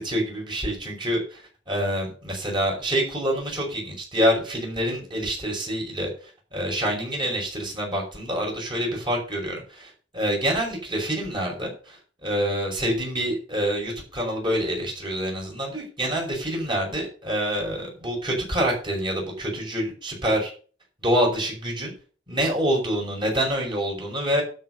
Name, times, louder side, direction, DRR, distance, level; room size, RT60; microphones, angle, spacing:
voice 1, 0.0-6.1 6.5-20.5 21.0-21.9 22.3-24.4, equal, 25° right, -1 dB, 5.5 m, -26 dB
12.0 x 5.6 x 7.8 m, 0.40 s
head